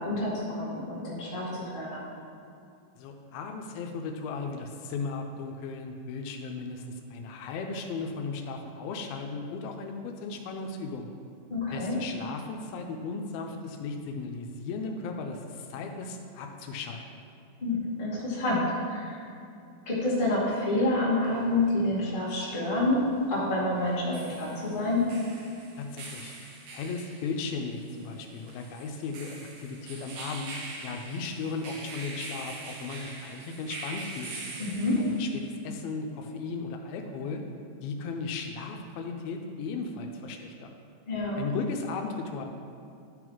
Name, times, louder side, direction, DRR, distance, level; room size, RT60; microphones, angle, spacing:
voice 1, 0.0-2.0 11.5-11.9 17.6-19.2 19.8-25.0 34.6-35.0 41.0-41.4, left 2 dB, 20° left, -8 dB, 1.2 m, -28 dB
voice 2, 3.0-11.1 11.7-17.1 25.8-26.3 26.7-30.5 30.8-34.4 35.0-37.4 37.8-40.8 41.4-42.4, left 4 dB, 85° left, 3 dB, 2.4 m, -36 dB
sound 1, 21.2-21.3 23.9-35.5, right 3 dB, 75° right, 2.8 m, -43 dB
11.5 x 4.0 x 4.5 m, 2.5 s
omnidirectional pair, 4.3 m